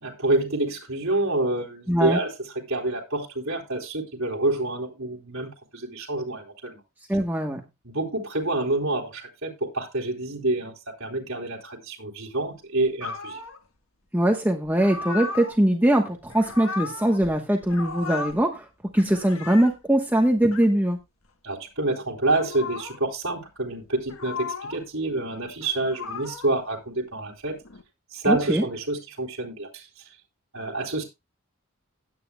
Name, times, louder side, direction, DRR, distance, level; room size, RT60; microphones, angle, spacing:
voice 1, 0.0-6.8 7.8-10.7 11.0-13.4 21.4-27.6 28.1-29.9 30.5-31.0, right 2 dB, 70° right, -2 dB, 3.5 m, -27 dB
voice 2, 1.9-2.2 7.1-7.6 14.1-18.7 18.9-21.0 28.3-28.6, right 1 dB, 10° right, 3 dB, 1.1 m, -22 dB
sound 1, 13.0-13.6 14.6-15.6 16.2-17.4 17.6-18.4 18.9-19.8 20.4-20.7 22.2-23.0 24.0-24.8 25.5-26.6 27.4-27.8, left 4 dB, 85° left, 1.3 m, -36 dB
16.0 x 9.4 x 2.2 m, 0.24 s
head